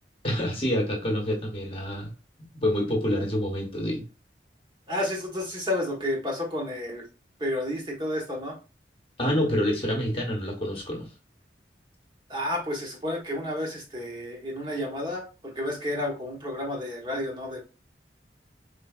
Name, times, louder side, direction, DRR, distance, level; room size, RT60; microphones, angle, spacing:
voice 1, 0.2-2.1 2.5-4.0 9.2-11.1, equal, 30° left, 1.0 m, -27 dB
voice 2, 4.9-7.0 7.4-8.5 12.3-17.6, left 1 dB, 25° right, 1.0 m, -31 dB
4.6 x 3.3 x 2.3 m
head